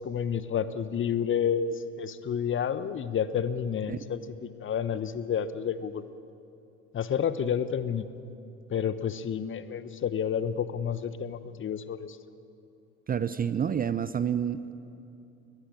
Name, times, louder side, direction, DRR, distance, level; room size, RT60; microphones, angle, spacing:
voice 1, 0.0-6.0 6.9-8.0 8.7-12.2, left 8 dB, 30° left, 14 dB, 1.1 m, -30 dB
voice 2, 13.1-14.7, right 8 dB, 25° right, 14 dB, 0.7 m, -29 dB
22.0 x 19.0 x 8.6 m, 2.7 s
figure-of-eight pair, 65°, 38 cm